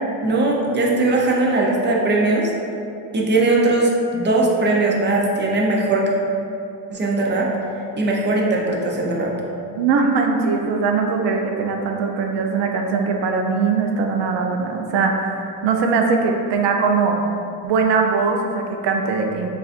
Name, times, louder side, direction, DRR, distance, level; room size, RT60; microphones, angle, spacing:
voice 1, 0.2-2.5 3.1-6.1 6.9-7.5 8.0-9.3, right 2 dB, 25° right, -2 dB, 0.5 m, -19 dB
voice 2, 9.8-17.2 17.6-19.5, right 4 dB, 85° right, 2 dB, 0.6 m, -21 dB
5.8 x 2.5 x 2.4 m, 2.6 s
cardioid pair, 135°, 41 cm